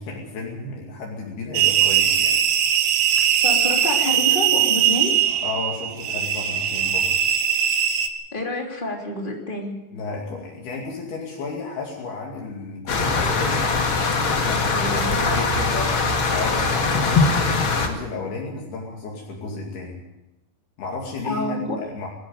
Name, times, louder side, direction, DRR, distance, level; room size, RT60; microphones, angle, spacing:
voice 1, 0.0-2.4 5.4-7.2 9.9-13.6 14.3-15.8 16.3-20.0 20.8-22.1, left 3 dB, 70° left, -1 dB, 4.4 m, -33 dB
sound 1, 1.5-8.1, right 9 dB, 75° right, 2.9 m, -20 dB
voice 2, 3.4-5.2 8.3-9.8 14.5-15.8 21.2-21.8, left 2 dB, 15° left, 0 dB, 2.7 m, -28 dB
sound 2, 12.9-17.9, left 4 dB, 40° left, 2.2 m, -21 dB
21.0 x 14.0 x 9.4 m, 0.95 s
omnidirectional pair, 4.8 m